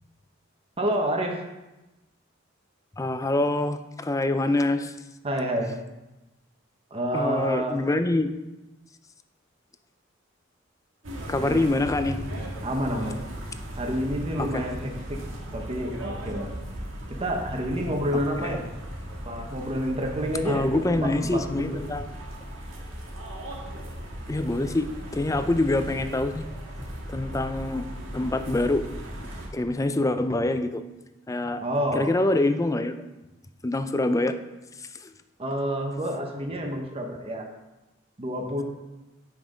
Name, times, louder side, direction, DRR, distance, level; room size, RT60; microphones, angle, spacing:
voice 1, 0.8-1.4 5.2-5.7 6.9-7.8 11.4-11.7 12.6-13.2 13.8-15.2 15.5-16.5 17.1-18.6 19.2-21.7 31.6-32.1 35.4-37.5 38.2-38.6, equal, 30° right, 1 dB, 1.0 m, -29 dB
voice 2, 3.0-4.9 7.1-8.3 11.3-12.2 14.4-14.7 18.4-18.6 20.5-22.1 24.3-24.9 25.1-26.5 26.8-27.8 28.1-28.9 29.5-30.8 31.3-31.6 31.9-32.9 33.6-34.3 35.0-35.1, left 2 dB, 15° left, 9 dB, 0.4 m, -25 dB
sound 1, 11.0-29.5, equal, 80° right, 1.7 m, -37 dB
7.1 x 6.0 x 5.0 m, 1.0 s
head